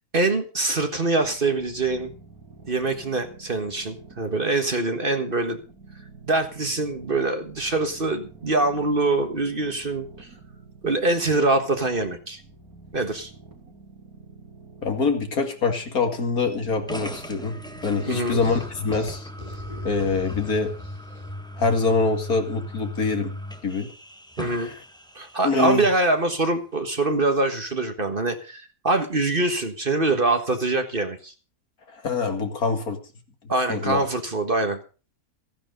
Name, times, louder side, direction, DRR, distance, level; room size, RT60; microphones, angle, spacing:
voice 1, 0.1-2.1 2.7-5.6 6.3-10.3 10.8-12.4 12.9-13.3 18.0-18.4 24.4-24.7 25.1-31.3 33.5-34.8, right 2 dB, 35° right, 7 dB, 1.6 m, -24 dB
sound 1, 1.2-19.1, right 4 dB, 75° right, 3.7 m, -48 dB
voice 2, 14.8-19.3 19.8-20.7 21.6-23.3 23.6-23.9 24.6-24.7 25.4-25.9 31.9-33.0 33.7-34.0, left 4 dB, 70° left, 6 dB, 2.5 m, -24 dB
sound 2, 16.9-25.6, left 1 dB, 5° left, 1.1 m, -38 dB
sound 3, 18.0-21.5, left 2 dB, 25° left, 2.8 m, -42 dB
15.5 x 10.5 x 5.3 m, 0.35 s
omnidirectional pair, 1.6 m